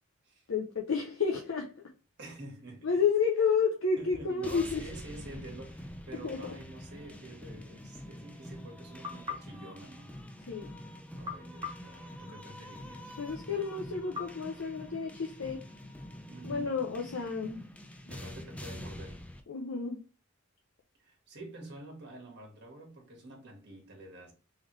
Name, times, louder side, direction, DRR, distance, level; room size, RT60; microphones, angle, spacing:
voice 1, 0.5-1.7 2.8-4.8 6.1-6.4 10.5-10.7 13.2-15.6 16.4-17.6 18.1-18.2 19.5-20.0, left 5 dB, 70° left, 0.6 m, -30 dB
voice 2, 2.2-3.0 3.4-3.5 4.0-10.1 10.4-10.5 11.1-13.2 16.3-16.8 18.1-19.2 21.0-24.3, right 2 dB, 55° right, 1.6 m, -48 dB
sound 1, 4.4-19.4, left 1 dB, 5° left, 0.4 m, -46 dB
sound 2, 9.0-10.6 11.2-12.8 14.1-15.5, left 5 dB, 20° right, 0.7 m, -45 dB
3.8 x 3.3 x 3.1 m
head